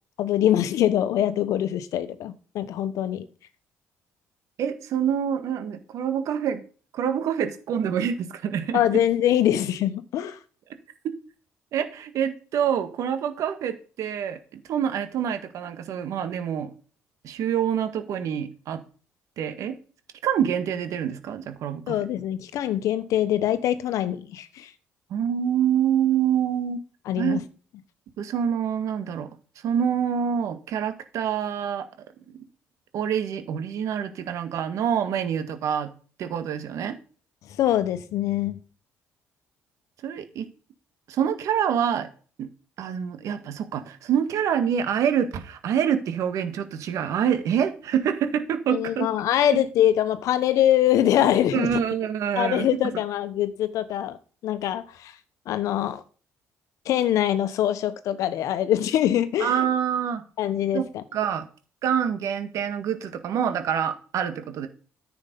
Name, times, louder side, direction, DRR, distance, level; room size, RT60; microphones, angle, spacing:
voice 1, 0.2-3.3 8.7-10.4 21.9-24.7 27.1-27.4 37.6-38.6 48.7-51.8 52.4-54.2 54.4-55.1 55.5-56.0 56.9-59.6 60.4-61.0, left 11 dB, 75° left, 1.0 m, -23 dB
voice 2, 4.6-6.6 6.9-9.0 11.7-16.7 17.2-18.8 19.4-19.7 20.2-22.1 25.1-26.8 27.2-27.4 28.2-29.3 29.6-31.9 32.3-32.4 32.9-35.9 36.2-37.0 40.0-40.5 41.1-42.1 42.4-42.5 42.8-49.1 51.5-52.7 59.4-60.2 60.7-60.8 61.1-61.5 61.8-64.7, right 8 dB, 75° right, 1.6 m, -26 dB
10.0 x 7.1 x 5.3 m
supercardioid pair, 70°, 6 cm